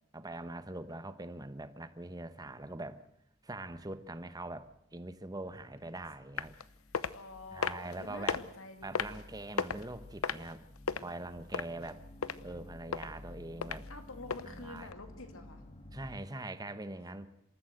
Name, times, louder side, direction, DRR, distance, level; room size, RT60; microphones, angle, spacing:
voice 1, 0.1-3.0 3.4-6.6 7.5-8.4 8.8-10.6 11.0-12.0 12.4-13.9 14.4-14.9 15.9-17.3, right 2 dB, 20° right, 1.1 m, -43 dB
sound 1, 4.6-5.1 5.4-16.3, left 1 dB, 30° left, 1.6 m, -53 dB
sound 2, 6.4-6.6 6.9-7.1 7.6-7.9 8.3-8.4 9.0-9.2 9.6-9.9 10.2-11.0 11.5-11.9 12.2-12.4 12.9-13.1 13.6-13.8 14.3-14.4 14.9-15.0, left 5 dB, 90° left, 0.9 m, -32 dB
voice 2, 7.1-9.2 13.9-15.6, left 2 dB, 70° left, 2.6 m, -48 dB
26.5 x 14.0 x 7.9 m
head